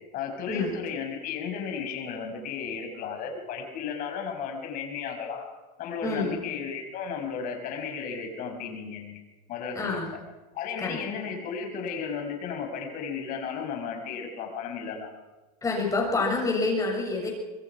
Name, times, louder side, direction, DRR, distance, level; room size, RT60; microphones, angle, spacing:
voice 1, 0.1-5.5 5.8-9.2 9.5-10.0 10.5-15.1, left 6 dB, 45° left, 4 dB, 5.8 m, -34 dB
voice 2, 6.0-6.4 9.7-10.1 10.8-11.0 15.6-17.3, left 3 dB, 15° left, 1 dB, 7.1 m, -27 dB
25.5 x 21.5 x 5.9 m, 1.2 s
supercardioid pair, 130°, 19 cm